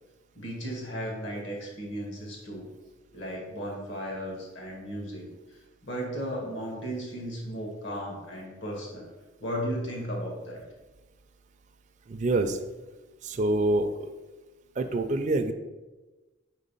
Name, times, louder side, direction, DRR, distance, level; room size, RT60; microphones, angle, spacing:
voice 1, 0.3-2.7 3.1-9.1 9.4-10.6, equal, 75° left, -1 dB, 1.6 m, -35 dB
voice 2, 12.1-12.6 13.2-14.1 14.8-15.5, right 2 dB, 40° right, 6 dB, 0.4 m, -26 dB
4.6 x 4.1 x 5.3 m, 1.2 s
head